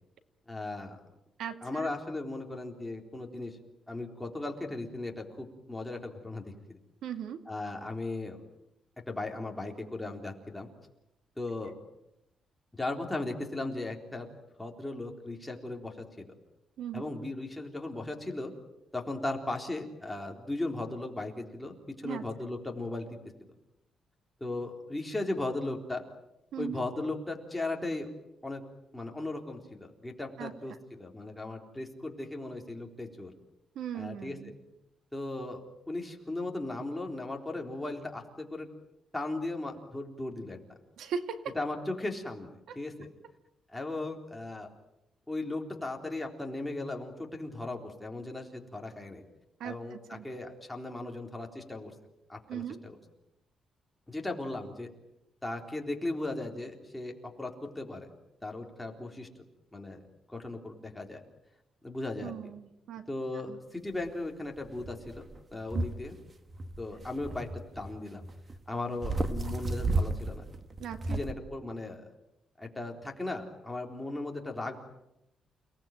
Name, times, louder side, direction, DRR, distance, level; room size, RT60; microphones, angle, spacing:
voice 1, 0.5-1.0 1.6-3.6 3.9-6.8 7.5-8.4 9.1-10.7 11.4-11.7 12.8-14.3 14.6-16.3 16.9-18.5 18.9-21.8 22.0-23.1 24.4-26.0 26.6-28.1 28.4-28.6 28.9-33.3 33.9-34.4 35.1-38.7 39.1-40.6 41.5-43.1 43.7-44.7 45.3-49.2 49.6-51.9 52.3-53.0 54.1-54.9 55.4-58.1 58.4-59.3 59.7-60.0 60.3-61.2 61.8-62.3 63.1-65.3 65.5-66.1 66.8-67.5 67.8-68.2 68.7-70.4 71.1-72.1 72.6-74.8, left 2 dB, 10° left, 1 dB, 3.8 m, -37 dB
voice 2, 1.4-1.9 7.0-7.4 16.8-17.1 22.0-22.2 26.5-26.8 30.4-30.5 33.8-34.5 41.0-41.5 42.7-42.8 49.6-50.2 52.5-52.8 62.2-63.1 63.5-63.6 65.7-65.8 70.8-71.2, right 8 dB, 85° right, 8 dB, 2.1 m, -38 dB
sound 1, 64.0-64.1 64.6-66.0 66.3-68.6 69.0-71.3, right 2 dB, 30° right, 1.6 m, -33 dB
30.0 x 19.0 x 9.1 m, 0.86 s
cardioid pair, 145°, 0 cm